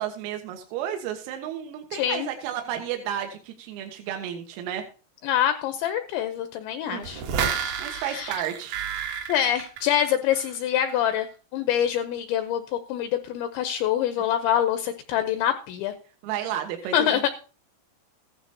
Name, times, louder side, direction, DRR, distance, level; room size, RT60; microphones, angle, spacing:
voice 1, 0.0-4.8 6.9-7.1 7.8-8.8 14.2-14.3 16.2-17.3, right 10 dB, 85° right, 4 dB, 3.9 m, -32 dB
voice 2, 1.9-2.3 5.2-7.2 7.9-8.3 9.3-11.3 11.5-15.9 16.9-17.3, left 10 dB, 85° left, 8 dB, 2.7 m, -25 dB
sound 1, 7.0-10.6 10.9-11.0, right 7 dB, 70° right, 2.4 m, -31 dB
15.5 x 12.0 x 2.8 m, 0.37 s
omnidirectional pair, 5.9 m